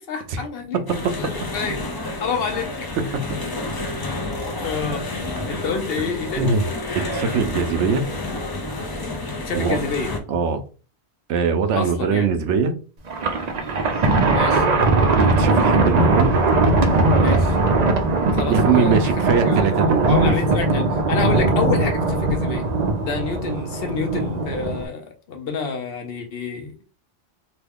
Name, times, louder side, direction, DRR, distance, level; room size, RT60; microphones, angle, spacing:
voice 1, 0.1-0.8 1.2-1.8 2.2-2.7 3.8-4.0 4.6-5.1 5.5-6.5 9.4-10.1 11.8-12.3 14.3-14.7 17.2-17.6 18.3-22.6 23.0-26.7, left 5 dB, 60° left, 0.8 m, -28 dB
voice 2, 0.7-1.1 6.4-6.6 6.9-8.0 9.5-9.8 10.3-10.6 11.3-12.7 14.5-14.6 15.4-16.3 18.5-20.1, right 5 dB, 85° right, 0.9 m, -21 dB
sound 1, 0.9-10.2, left 2 dB, 35° left, 0.3 m, -29 dB
Thunder, 13.1-24.8, right 2 dB, 50° right, 0.5 m, -19 dB
3.0 x 2.3 x 3.4 m
omnidirectional pair, 1.2 m